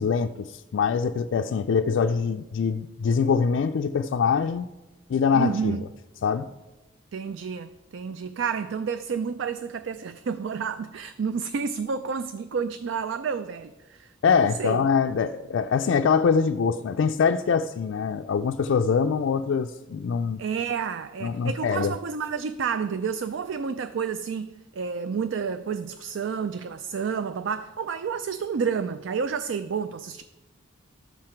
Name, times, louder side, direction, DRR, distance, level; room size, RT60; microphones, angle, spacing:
voice 1, 0.0-4.7 5.1-5.8 6.2-6.5 14.2-20.4 21.2-21.9, left 6 dB, 70° left, 0.3 m, -24 dB
voice 2, 5.3-5.9 7.1-14.9 20.4-30.2, right 6 dB, 70° right, 0.4 m, -30 dB
12.0 x 7.6 x 4.4 m
head